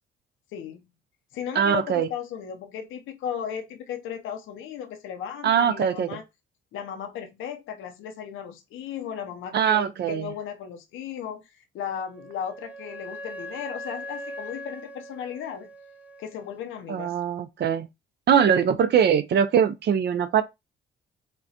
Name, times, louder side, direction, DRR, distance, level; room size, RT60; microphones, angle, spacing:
voice 1, 0.5-0.8 1.3-6.2 6.7-15.7 16.2-17.2, left 8 dB, 85° left, 0.7 m, -36 dB
voice 2, 1.5-2.1 5.4-6.1 9.5-10.3 16.9-17.9 18.3-20.4, right 8 dB, 55° right, 0.5 m, -22 dB
Wind instrument woodwind instrument, 11.9-16.5, equal, 5° right, 0.4 m, -40 dB
5.1 x 2.2 x 2.8 m
cardioid pair, 90°, 20 cm